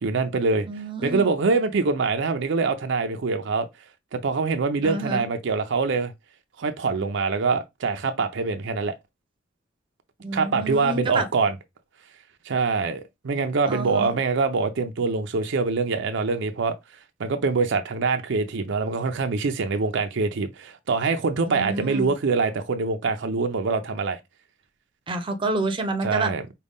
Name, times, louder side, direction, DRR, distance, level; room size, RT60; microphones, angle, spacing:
voice 1, 0.0-0.7 1.0-3.7 4.1-6.1 6.6-8.9 10.3-11.5 12.5-16.7 17.2-24.2 26.0-26.4, right 4 dB, 65° right, 0.5 m, -24 dB
voice 2, 0.7-1.3 4.8-5.2 10.2-11.3 13.7-14.1 21.5-22.1 25.1-26.3, right 2 dB, 25° right, 0.6 m, -28 dB
5.1 x 2.2 x 3.5 m
head